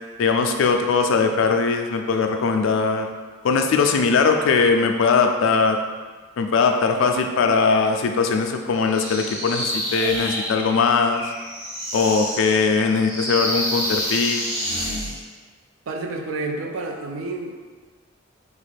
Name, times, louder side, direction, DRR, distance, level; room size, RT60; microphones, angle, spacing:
voice 1, 0.2-3.1 3.4-5.8 6.4-11.2 11.9-14.4, left 4 dB, 75° left, 5 dB, 0.3 m, -20 dB
sound 1, 8.9-15.2, equal, 60° right, 1.3 m, -28 dB
voice 2, 15.9-17.6, right 2 dB, 80° right, 2 dB, 0.4 m, -29 dB
3.4 x 2.4 x 3.3 m, 1.4 s
head